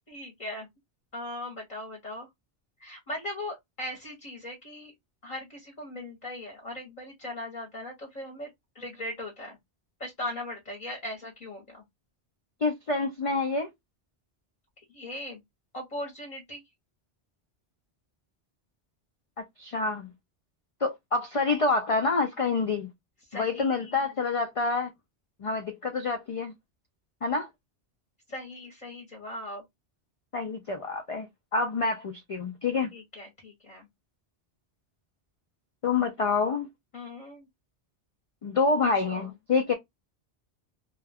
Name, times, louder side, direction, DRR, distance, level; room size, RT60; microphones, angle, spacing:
voice 1, 0.1-0.7 1.1-2.3 2.8-4.9 5.2-8.5 8.7-9.6 10.0-11.8 14.9-15.4 15.7-16.6 23.3-24.0 28.3-29.6 32.9-33.9 36.9-37.5 38.9-39.3, left 1 dB, 40° left, 0.9 m, -39 dB
voice 2, 12.6-13.7 19.4-20.1 20.8-22.9 23.3-24.9 25.4-26.5 27.2-27.5 30.3-31.3 31.5-32.9 35.8-36.7 38.4-39.7, left 4 dB, 65° left, 0.3 m, -27 dB
2.3 x 2.2 x 3.3 m
omnidirectional pair, 1.1 m